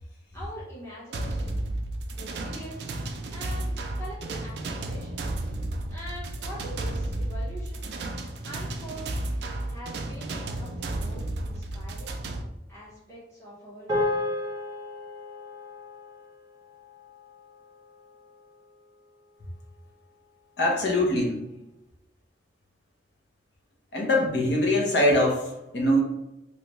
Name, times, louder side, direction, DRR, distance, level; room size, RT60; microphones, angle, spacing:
voice 1, 0.3-1.6 2.2-2.9 3.3-5.3 5.9-7.9 8.4-9.1 9.7-12.1 12.7-14.3, equal, 15° left, -8 dB, 0.9 m, -43 dB
sound 1, 1.1-12.4, right 1 dB, 65° right, 0.4 m, -33 dB
sound 2, 13.9-18.4, left 2 dB, 15° right, 0.9 m, -33 dB
voice 2, 20.6-21.4 23.9-26.0, left 1 dB, 65° left, -1 dB, 0.9 m, -23 dB
3.2 x 2.6 x 3.0 m, 0.96 s
head